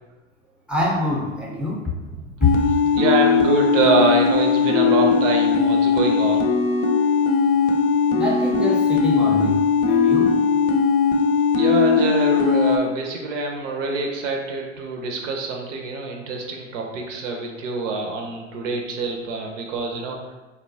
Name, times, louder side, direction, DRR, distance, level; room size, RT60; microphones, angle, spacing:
voice 1, 0.7-1.8 2.1-2.5 8.1-9.6 9.9-10.3, left 2 dB, 5° right, -3 dB, 0.5 m, -24 dB
sound 1, 2.4-12.8, left 5 dB, 45° left, 0.4 m, -19 dB
voice 2, 2.9-6.4 11.5-20.3, right 3 dB, 75° right, 1 dB, 0.6 m, -25 dB
2.8 x 2.1 x 2.6 m, 1.2 s
hypercardioid pair, 75°, 39 cm